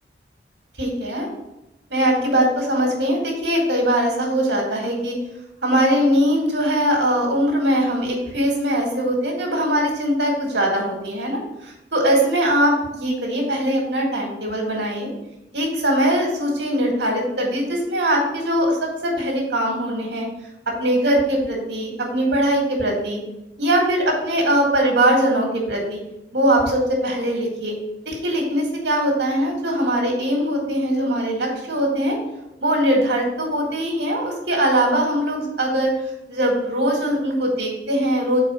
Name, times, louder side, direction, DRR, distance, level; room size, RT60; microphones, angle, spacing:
voice 1, 0.8-1.3 1.9-5.2 5.6-15.1 15.5-18.8 19.0-20.3 20.8-23.2 23.6-26.0 26.3-27.7 28.1-32.2 32.6-35.9 36.3-38.4, right 1 dB, 70° right, 0 dB, 1.9 m, -21 dB
4.8 x 4.4 x 5.5 m, 0.91 s
head